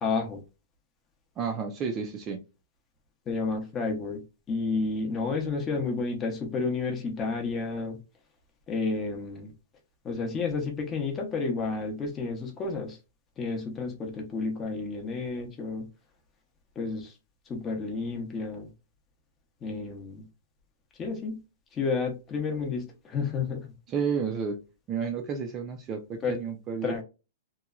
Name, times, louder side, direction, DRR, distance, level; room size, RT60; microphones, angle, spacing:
voice 1, 0.0-0.4 3.3-4.2 4.5-8.0 8.7-9.5 10.0-13.0 13.4-15.9 16.8-17.1 17.5-18.7 19.6-20.2 21.0-21.4 21.7-23.7 26.2-26.3 26.8-27.0, left 4 dB, 20° left, 0.6 m, -31 dB
voice 2, 1.4-2.4 23.9-24.6 24.9-27.0, right 6 dB, 20° right, 0.4 m, -31 dB
2.9 x 2.2 x 2.3 m
hypercardioid pair, 160°, 0 cm